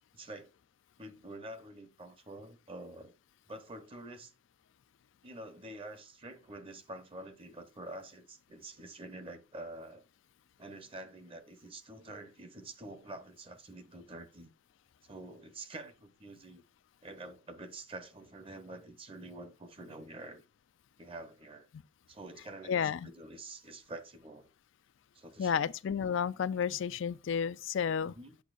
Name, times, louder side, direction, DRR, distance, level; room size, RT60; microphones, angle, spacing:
voice 1, 0.1-0.5 1.0-3.1 3.5-4.3 5.2-10.1 10.6-14.5 15.0-16.6 17.0-20.4 21.0-21.7 22.1-24.5 25.1-25.7 28.0-28.4, right 2 dB, 30° right, 0.9 m, -47 dB
voice 2, 22.7-23.0 25.4-28.1, left 7 dB, 65° left, 0.4 m, -31 dB
8.3 x 7.1 x 2.5 m
head